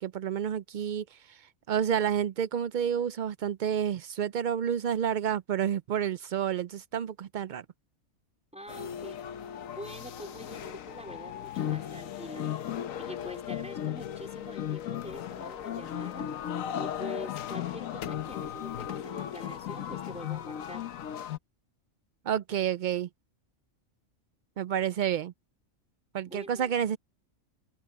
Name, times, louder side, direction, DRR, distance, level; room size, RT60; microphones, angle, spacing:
voice 1, 0.0-1.4 1.7-7.6 22.3-23.1 24.6-25.3 26.1-27.0, right 9 dB, 75° right, 0.4 m, -29 dB
voice 2, 8.5-9.2 9.7-12.4 13.0-16.3 16.7-20.8 26.3-26.7, equal, 5° right, 3.9 m, -45 dB
sound 1, 8.7-21.4, left 10 dB, 85° left, 1.2 m, -36 dB
omnidirectional pair, 1.4 m